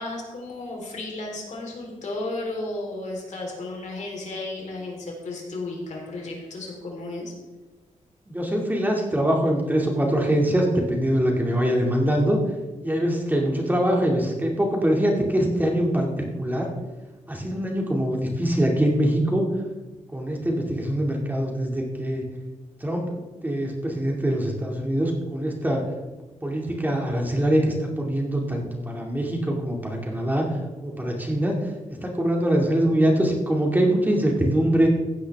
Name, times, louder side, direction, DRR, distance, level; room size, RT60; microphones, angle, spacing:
voice 1, 0.0-7.3, left 2 dB, 65° left, -1 dB, 3.8 m, -33 dB
voice 2, 8.3-12.4 12.8-16.7 17.3-19.5 20.1-22.2 22.8-23.1 23.4-25.8 26.4-30.5 30.8-31.6 32.0-34.9, right 1 dB, 15° right, 0 dB, 2.3 m, -23 dB
15.0 x 9.9 x 3.5 m, 1.2 s
cardioid pair, 100°, 13 cm